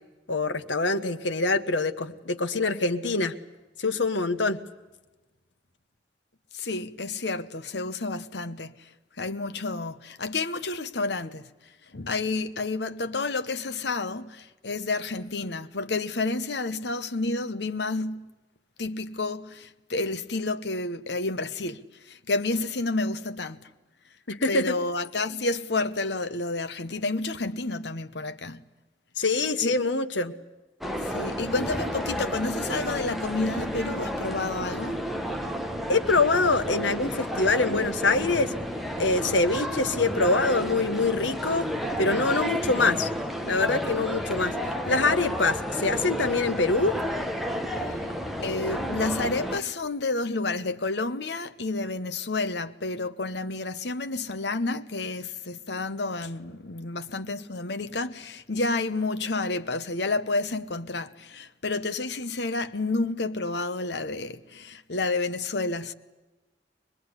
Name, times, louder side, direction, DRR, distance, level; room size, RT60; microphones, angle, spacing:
voice 1, 0.3-3.3 3.8-4.6 24.3-24.7 29.2-30.3 35.9-38.5 39.0-41.7 42.0-43.1 43.5-44.5 44.9-46.9, left 3 dB, 85° left, 1.5 m, -24 dB
voice 2, 6.5-8.9 9.2-11.5 11.9-18.3 18.8-23.7 24.5-28.6 29.6-29.8 31.0-35.0 47.8-48.1 48.4-65.9, left 3 dB, 65° left, 1.1 m, -30 dB
sound 1, 30.8-49.6, equal, ahead, 1.5 m, -31 dB
24.5 x 20.5 x 9.8 m
head